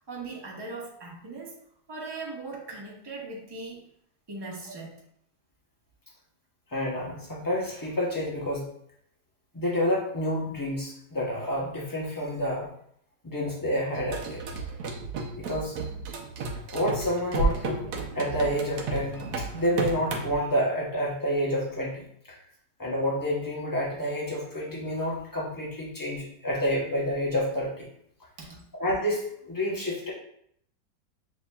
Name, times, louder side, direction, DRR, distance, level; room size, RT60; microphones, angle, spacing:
voice 1, 0.0-1.6 1.9-3.9 4.3-5.0 28.4-28.5, right 3 dB, 25° right, -3 dB, 0.5 m, -39 dB
voice 2, 6.7-8.7 9.5-12.7 13.2-14.6 15.3-15.8 16.7-17.8 18.1-22.4 22.8-27.9 28.7-30.1, equal, 30° left, -5 dB, 0.3 m, -29 dB
sound 1, 13.9-20.3, right 3 dB, 70° right, 1.1 m, -32 dB
6.7 x 2.7 x 2.2 m, 0.69 s
omnidirectional pair, 1.9 m